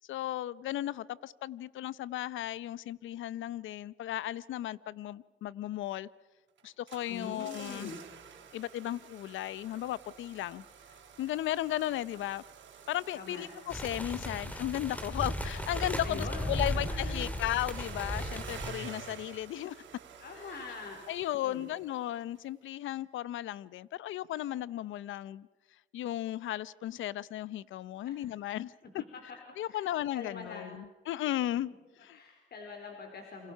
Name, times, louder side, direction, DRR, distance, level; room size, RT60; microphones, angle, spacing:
voice 1, 0.1-6.1 6.6-7.9 8.5-10.6 11.2-12.4 12.9-19.8 20.4-20.5 21.1-25.5 25.9-29.0 29.6-31.7 32.0-32.2, left 13 dB, 75° left, 0.7 m, -35 dB
sound 1, 6.6-22.1 22.4-22.5, right 6 dB, 70° right, 4.3 m, -50 dB
voice 2, 7.1-8.0 13.1-13.5 16.0-17.4 20.2-21.0 21.4-21.7 28.1-28.2 28.8-28.9 29.7-30.8 32.1-33.5, left 4 dB, 55° left, 4.4 m, -44 dB
sound 2, 13.7-18.7, equal, 5° left, 2.6 m, -35 dB
28.5 x 26.5 x 5.7 m
cardioid pair, 90°, 20 cm